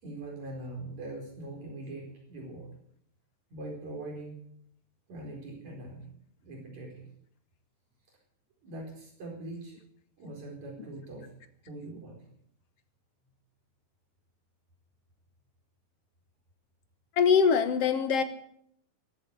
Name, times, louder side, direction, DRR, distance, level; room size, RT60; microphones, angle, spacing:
voice 1, 0.0-2.7 3.5-4.4 5.1-6.1 6.4-7.1 8.6-9.8 10.2-11.3 11.7-12.2, right 2 dB, 70° right, -1 dB, 5.9 m, -42 dB
voice 2, 17.2-18.2, left 6 dB, 60° left, 10 dB, 2.0 m, -23 dB
14.5 x 14.5 x 6.8 m, 0.70 s
omnidirectional pair, 3.4 m